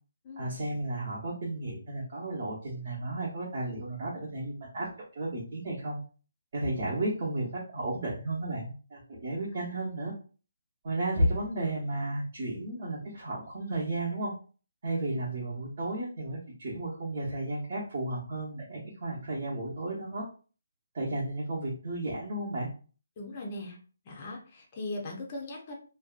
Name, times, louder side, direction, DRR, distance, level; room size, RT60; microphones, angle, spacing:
voice 1, 0.4-4.9 5.1-6.0 6.5-10.1 10.8-14.3 14.8-20.3 20.9-22.7, right 1 dB, 40° right, -7 dB, 0.8 m, -33 dB
voice 2, 23.2-23.8 24.0-25.7, left 2 dB, 25° left, -1 dB, 0.6 m, -39 dB
2.6 x 2.2 x 2.4 m, 0.38 s
hypercardioid pair, 175°, 0 cm